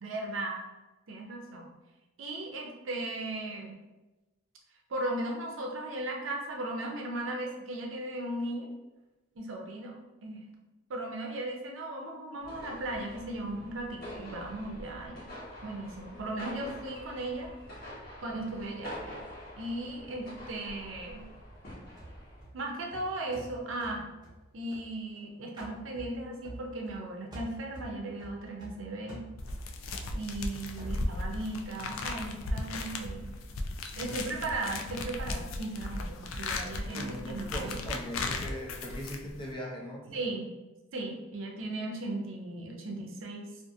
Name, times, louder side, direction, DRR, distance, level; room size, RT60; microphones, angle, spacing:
voice 1, 0.0-0.6 1.1-1.7 2.2-3.8 4.9-8.7 9.4-10.0 10.2-10.4 10.9-15.2 15.6-17.5 18.2-19.2 19.6-21.2 22.5-24.1 24.5-29.2 30.1-33.3 34.0-37.9 40.1-40.5 40.9-43.5, right 2 dB, 75° right, 0 dB, 0.6 m, -37 dB
sound 1, 12.4-22.4, equal, 50° left, 1.1 m, -46 dB
sound 2, 22.0-25.2 25.6-27.0 27.3-31.5, right 1 dB, 20° right, 0.8 m, -47 dB
sound 3, 29.4-39.5, left 2 dB, 90° left, 0.3 m, -36 dB
voice 2, 34.0-34.4 36.9-40.3, equal, 25° left, -2 dB, 0.5 m, -40 dB
2.5 x 2.5 x 2.6 m, 1.1 s
head